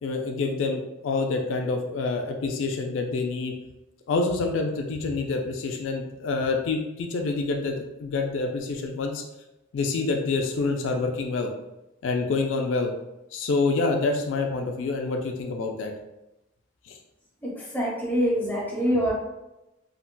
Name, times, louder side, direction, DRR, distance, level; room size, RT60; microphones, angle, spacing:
voice 1, 0.0-3.5 4.1-9.2 9.7-11.5 12.0-12.9 13.3-15.9 16.9-17.0, left 3 dB, 75° left, 3 dB, 0.3 m, -27 dB
voice 2, 17.4-19.1, equal, 10° left, -6 dB, 0.9 m, -25 dB
3.8 x 2.1 x 2.2 m, 0.94 s
head